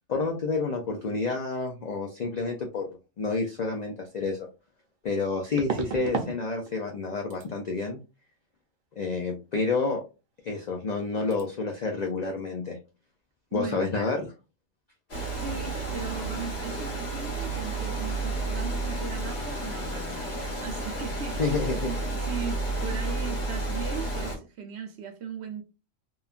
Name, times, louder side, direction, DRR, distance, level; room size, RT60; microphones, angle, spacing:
voice 1, 0.1-2.9 3.2-4.4 5.0-8.0 9.0-10.0 10.4-12.8 13.5-14.3 21.4-21.9, left 4 dB, 70° left, 0.4 m, -29 dB
sound 1, 4.0-4.1 5.6-6.4 6.6-7.0 7.3-7.5 10.4-10.5 10.8-11.0 11.3-11.4, right 6 dB, 85° right, 1.1 m, -33 dB
voice 2, 13.5-13.9 15.3-25.6, right 6 dB, 65° right, 0.7 m, -38 dB
Water, 15.1-24.4, right 2 dB, 50° left, 1.3 m, -31 dB
3.0 x 2.2 x 2.4 m
omnidirectional pair, 1.4 m